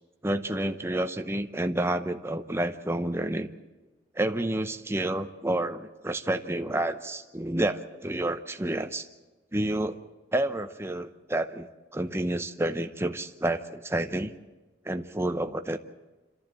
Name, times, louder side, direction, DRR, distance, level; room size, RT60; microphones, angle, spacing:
voice 1, 0.2-3.5 4.1-9.1 9.5-10.0 10.3-14.3 14.8-15.8, right 1 dB, 15° right, 8 dB, 0.8 m, -29 dB
27.5 x 14.0 x 7.5 m, 1.2 s
head